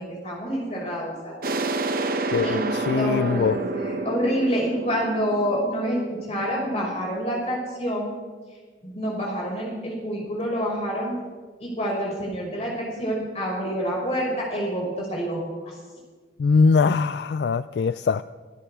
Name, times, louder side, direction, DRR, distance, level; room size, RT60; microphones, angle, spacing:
voice 1, 0.0-1.4 2.4-2.7 3.0-8.1 8.8-11.2 11.6-15.4 15.7-15.8, equal, 35° left, -4 dB, 6.0 m, -27 dB
sound 1, 1.4-6.9, right 2 dB, 50° right, 0.9 m, -29 dB
voice 2, 2.3-3.6 16.4-18.2, left 4 dB, 65° left, 14 dB, 0.3 m, -22 dB
24.5 x 12.5 x 3.6 m, 1.4 s
head